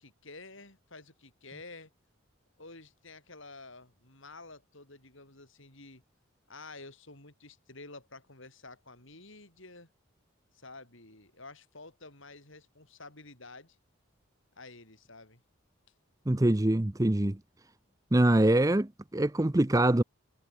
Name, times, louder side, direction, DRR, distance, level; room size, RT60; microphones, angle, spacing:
voice 1, 0.0-1.9 2.6-6.0 6.5-9.9 10.5-13.8 14.6-15.4, left 3 dB, 65° left, 6.1 m, -50 dB
voice 2, 16.3-17.4 18.1-20.0, right 1 dB, 15° right, 0.6 m, -24 dB
head